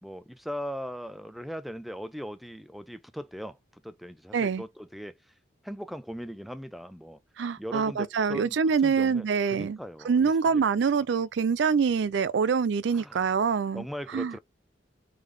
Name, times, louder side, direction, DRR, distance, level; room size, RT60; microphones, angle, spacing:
voice 1, 0.0-5.3 5.6-7.2 7.6-8.6 8.8-10.6 12.9-13.3 13.7-14.4, equal, ahead, 0.4 m, -39 dB
voice 2, 4.3-4.6 7.4-9.8 10.1-13.8 14.1-14.3, right 6 dB, 70° right, 0.4 m, -25 dB
3.7 x 3.3 x 3.3 m
head